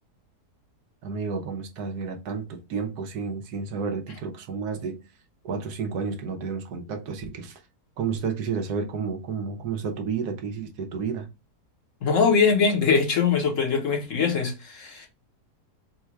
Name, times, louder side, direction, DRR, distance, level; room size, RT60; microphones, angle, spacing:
voice 1, 1.0-5.0 5.4-7.6 8.0-11.3, right 5 dB, 75° right, 1.3 m, -31 dB
voice 2, 12.0-15.1, left 5 dB, 55° left, 1.1 m, -22 dB
3.9 x 2.3 x 4.5 m
omnidirectional pair, 1.7 m